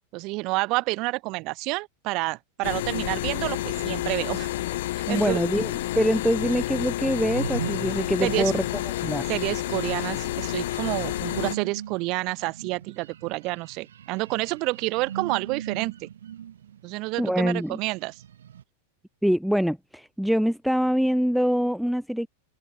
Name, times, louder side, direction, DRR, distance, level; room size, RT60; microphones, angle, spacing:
voice 1, 0.1-4.5 5.1-5.4 8.2-8.5 9.3-16.1 16.8-18.2, right 24 dB, 40° right, 1.2 m, -29 dB
sound 1, 2.6-11.6, left 16 dB, 55° left, 1.6 m, -30 dB
voice 2, 5.1-8.6 9.0-9.3 17.2-17.8 19.2-22.3, equal, ahead, 0.3 m, -24 dB
sound 2, 7.2-18.6, right 9 dB, 65° right, 3.7 m, -40 dB
figure-of-eight pair, 90°, 0 cm